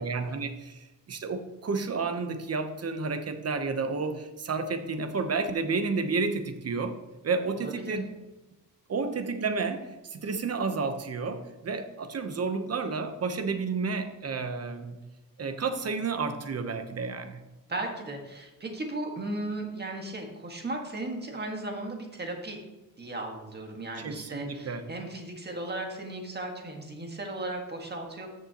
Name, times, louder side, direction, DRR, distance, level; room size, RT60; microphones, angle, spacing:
voice 1, 0.0-6.9 7.2-8.1 8.9-15.0 15.4-17.4 24.0-24.8, right 4 dB, 45° right, 8 dB, 0.9 m, -31 dB
voice 2, 7.6-8.0 17.7-22.6 23.0-28.3, right 2 dB, 30° right, 2 dB, 1.7 m, -36 dB
13.5 x 6.5 x 3.0 m, 1.1 s
wide cardioid pair, 135°, 35 cm